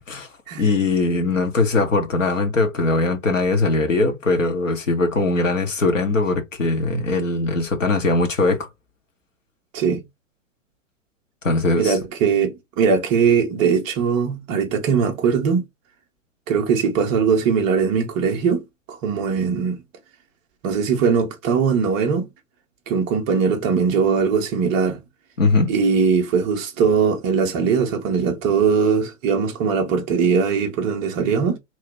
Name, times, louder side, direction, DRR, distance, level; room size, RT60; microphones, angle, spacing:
voice 1, 0.6-8.7 11.4-12.0 25.4-25.7, left 3 dB, 75° left, 1.2 m, -20 dB
voice 2, 11.8-15.6 16.5-18.6 18.9-19.8 20.6-22.3 22.9-25.0 25.7-31.6, right 6 dB, 15° right, 0.4 m, -20 dB
3.0 x 2.7 x 3.2 m
figure-of-eight pair, 105°, 39 cm